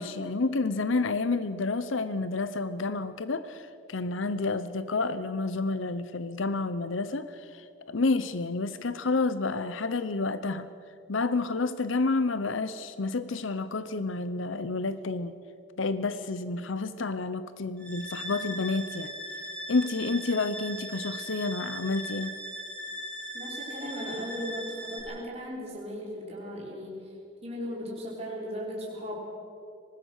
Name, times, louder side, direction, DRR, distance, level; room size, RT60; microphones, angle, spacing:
voice 1, 0.0-10.7 11.1-15.3 15.8-19.1 19.7-22.3, left 3 dB, 75° left, 13 dB, 0.8 m, -29 dB
sound 1, 17.8-25.0, equal, 5° left, 6.2 m, -39 dB
voice 2, 23.3-27.1 27.4-29.2, equal, 30° right, -4 dB, 4.4 m, -37 dB
24.5 x 19.5 x 6.5 m, 2.6 s
head